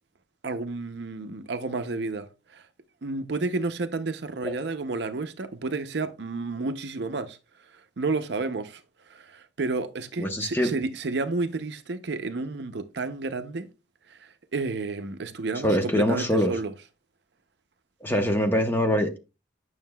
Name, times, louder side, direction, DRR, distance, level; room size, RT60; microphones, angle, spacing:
voice 1, 0.4-2.7 3.0-7.4 7.7-8.8 9.1-13.7 14.1-16.7, right 3 dB, 60° right, 0.6 m, -31 dB
voice 2, 10.2-10.7 15.6-16.5 18.0-19.2, equal, 10° left, 0.8 m, -23 dB
9.2 x 6.3 x 2.2 m
head